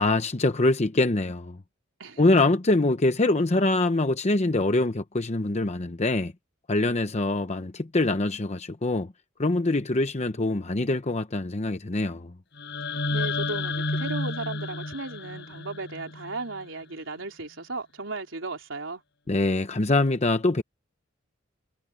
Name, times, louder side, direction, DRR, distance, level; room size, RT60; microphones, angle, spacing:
voice 1, 0.0-1.6 2.2-6.3 6.7-9.1 9.4-12.3 19.3-20.6, left 2 dB, 35° left, 0.8 m, -24 dB
sound 1, 12.6-16.6, left 3 dB, 60° left, 4.8 m, -31 dB
voice 2, 12.9-19.0, right 3 dB, 85° right, 3.7 m, -36 dB
head